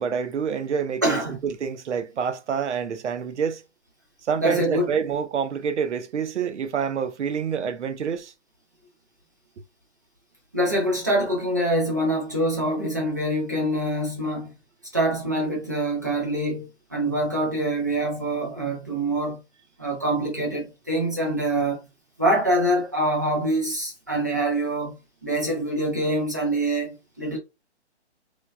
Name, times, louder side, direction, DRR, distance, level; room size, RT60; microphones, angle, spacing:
voice 1, 0.0-3.6 4.3-8.3, right 7 dB, 85° right, 0.6 m, -27 dB
voice 2, 1.0-1.4 4.4-4.9 10.5-14.5 14.9-19.4 19.8-21.8 22.2-27.4, right 1 dB, 20° right, 0.4 m, -25 dB
3.2 x 2.1 x 2.3 m
hypercardioid pair, 160°, 35 cm